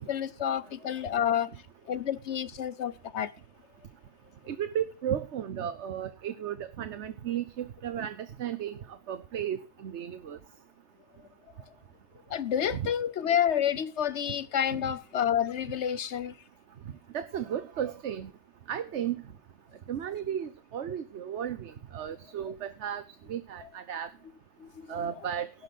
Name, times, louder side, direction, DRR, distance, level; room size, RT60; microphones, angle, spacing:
voice 1, 0.0-1.5 1.9-3.3 12.3-16.3 24.6-24.9, left 9 dB, 80° left, 1.2 m, -29 dB
voice 2, 4.5-10.4 12.7-12.9 14.7-14.9 17.1-18.3 18.7-19.2 19.9-23.0 23.3-24.1 24.9-25.5, right 9 dB, 85° right, 1.1 m, -34 dB
12.0 x 6.1 x 7.7 m
omnidirectional pair, 1.1 m